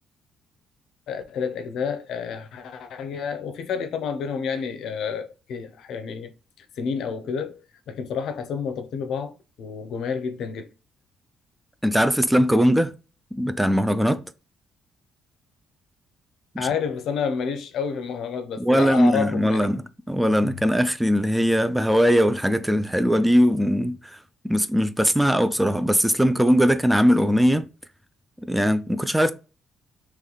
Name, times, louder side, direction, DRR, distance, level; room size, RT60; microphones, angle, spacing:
voice 1, 1.1-7.6 7.9-9.3 9.6-10.7 16.6-19.7, left 6 dB, 75° left, 0.6 m, -29 dB
voice 2, 11.8-12.9 13.3-14.2 16.5-16.7 18.6-24.2 24.4-27.7 28.4-29.3, equal, 5° right, 0.3 m, -20 dB
3.2 x 3.1 x 3.9 m
cardioid pair, 95°, 0 cm